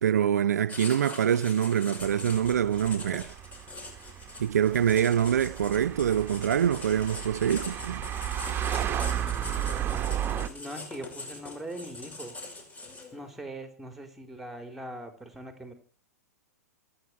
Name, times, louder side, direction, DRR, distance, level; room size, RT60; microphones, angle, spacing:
voice 1, 0.0-3.3 4.4-8.1, right 9 dB, 70° right, 0.8 m, -25 dB
Writing, 0.7-13.3, left 2 dB, 15° left, 6.1 m, -42 dB
sound 1, 2.0-10.5, right 11 dB, 25° right, 1.6 m, -34 dB
voice 2, 10.1-12.3 13.1-15.7, right 1 dB, 5° right, 4.1 m, -41 dB
27.5 x 9.7 x 4.8 m
figure-of-eight pair, 105°, 9 cm